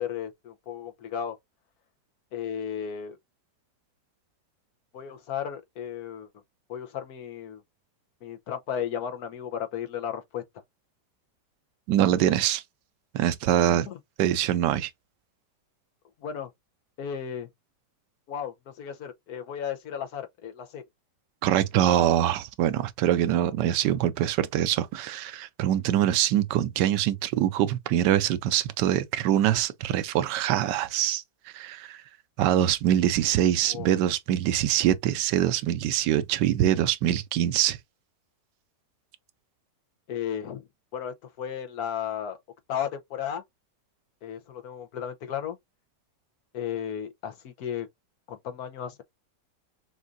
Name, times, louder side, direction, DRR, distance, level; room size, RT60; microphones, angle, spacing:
voice 1, 0.0-1.4 2.3-3.2 4.9-6.3 6.7-7.6 8.2-10.4 13.7-14.0 16.2-16.5 17.0-17.5 18.3-20.8 33.7-33.9 40.1-40.6 40.9-42.4 42.7-43.4 44.2-45.6 46.5-47.9 48.3-49.0, left 8 dB, 65° left, 1.3 m, -34 dB
voice 2, 11.9-12.6 13.1-13.9 14.2-14.9 21.4-31.2 31.5-32.0 32.4-37.8, right 11 dB, 90° right, 1.2 m, -24 dB
6.2 x 2.6 x 2.5 m
omnidirectional pair, 1.8 m